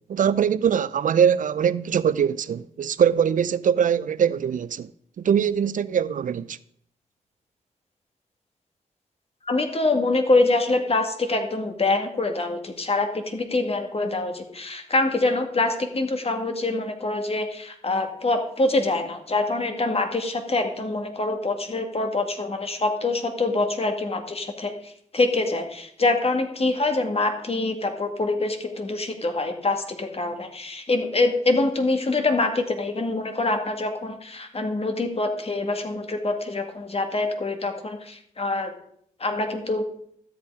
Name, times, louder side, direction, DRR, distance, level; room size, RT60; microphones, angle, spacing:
voice 1, 0.1-4.9 5.2-6.6, right 8 dB, 65° right, 0.5 m, -22 dB
voice 2, 9.4-38.7 39.2-39.8, left 2 dB, 45° left, 2.2 m, -25 dB
13.0 x 8.2 x 4.9 m
cardioid pair, 50°, 14 cm